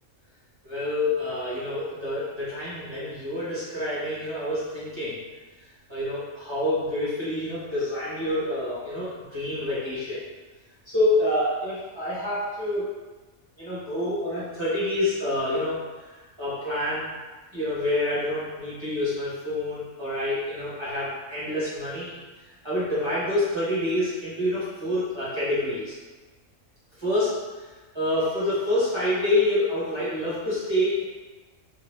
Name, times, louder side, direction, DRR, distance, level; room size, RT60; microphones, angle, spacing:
voice 1, 0.6-5.2 5.9-10.2 10.9-12.9 13.6-17.0 17.5-22.2 22.6-25.9 27.0-27.7 27.9-31.0, left 1 dB, 20° right, -10 dB, 1.2 m, -27 dB
2.8 x 2.6 x 3.1 m, 1.3 s
omnidirectional pair, 1.4 m